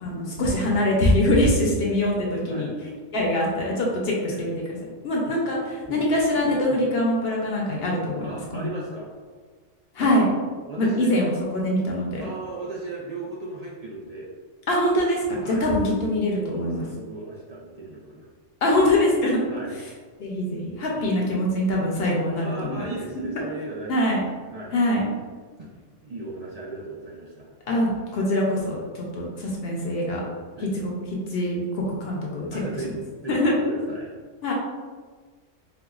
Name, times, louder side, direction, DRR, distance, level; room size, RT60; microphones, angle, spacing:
voice 1, 0.0-2.7 3.1-4.5 5.0-8.7 9.9-10.3 10.8-12.2 14.7-16.8 18.6-19.4 20.2-22.9 23.9-24.2 24.7-25.0 27.7-28.8 29.1-30.2 30.8-30.9 31.3-32.6 33.3-33.5 34.4-34.5, left 1 dB, 60° left, -2 dB, 0.8 m, -23 dB
voice 2, 8.2-9.1 10.0-10.1 10.7-11.1 12.2-14.3 15.4-15.7 16.4-18.3 19.5-19.7 20.9-21.1 22.4-24.2 24.5-24.7 25.6-25.7 26.0-27.5 30.6-30.7 32.5-32.9 33.2-34.1, right 3 dB, 75° right, -6 dB, 0.3 m, -36 dB
4.5 x 2.2 x 2.3 m, 1.5 s
omnidirectional pair, 1.3 m